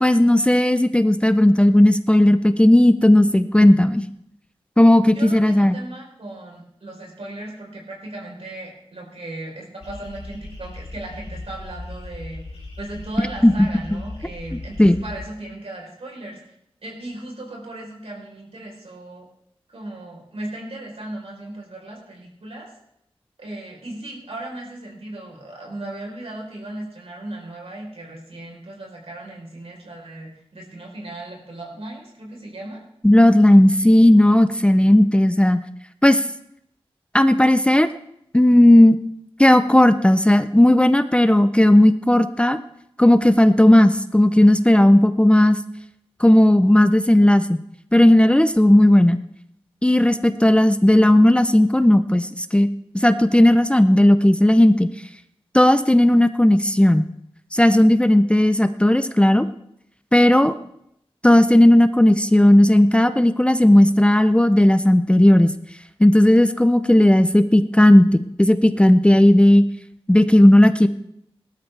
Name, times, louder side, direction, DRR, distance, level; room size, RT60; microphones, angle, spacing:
voice 1, 0.0-4.0 4.8-5.7 13.4-13.5 14.8-15.0 33.0-35.6 36.0-36.2 37.1-37.9 38.3-39.0 39.4-42.6 43.0-45.6 46.2-47.6 47.9-49.2 49.8-52.7 52.9-54.9 55.5-57.0 57.5-59.5 60.1-60.5 61.2-65.5 66.0-69.6 70.1-70.9, left 1 dB, 10° left, 11 dB, 0.6 m, -14 dB
voice 2, 5.1-16.6 16.8-19.3 19.7-22.7 23.4-32.8, right 1 dB, 75° right, -1 dB, 3.9 m, -37 dB
sound 1, 9.8-15.2, left 2 dB, 85° left, 3.5 m, -37 dB
19.0 x 12.0 x 3.3 m, 0.76 s
wide cardioid pair, 80°, 10 cm